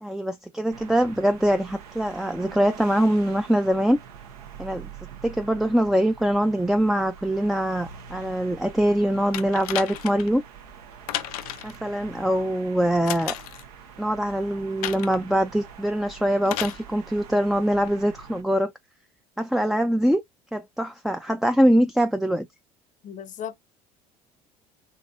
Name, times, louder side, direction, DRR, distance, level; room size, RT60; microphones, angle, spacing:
voice 1, 0.0-4.0 4.6-4.9 5.2-10.4 11.6-13.4 14.0-18.7 19.4-20.2 20.5-22.5, equal, ahead, 0.3 m, -23 dB
sound 1, 0.7-18.4, right 7 dB, 75° right, 0.8 m, -45 dB
sound 2, 9.3-10.3 11.1-11.8 13.1-13.7 14.8-15.2 16.5-16.8 17.9-18.0, left 13 dB, 75° left, 0.4 m, -33 dB
voice 2, 23.0-23.5, left 8 dB, 40° left, 0.7 m, -35 dB
3.9 x 2.7 x 2.5 m
hypercardioid pair, 65°, 19 cm